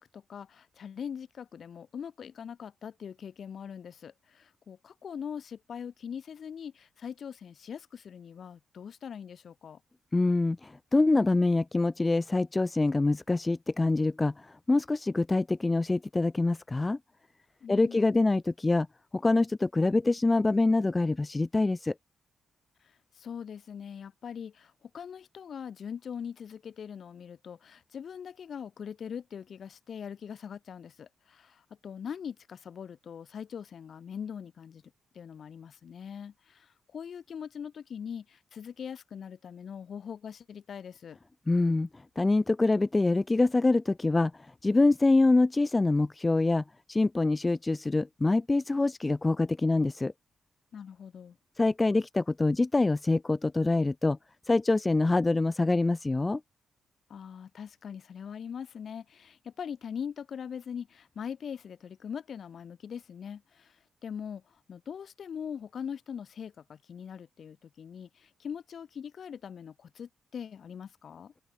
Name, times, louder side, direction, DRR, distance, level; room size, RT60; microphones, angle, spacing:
voice 1, 0.0-9.8 17.6-18.4 22.8-34.8 35.1-41.2 50.7-51.4 57.1-71.3, left 7 dB, 50° left, 3.5 m, -42 dB
voice 2, 10.1-17.0 17.7-18.9 19.1-21.9 41.5-50.1 51.6-54.2 54.5-56.4, left 2 dB, 15° left, 0.5 m, -25 dB
wide cardioid pair, 150°, 0 cm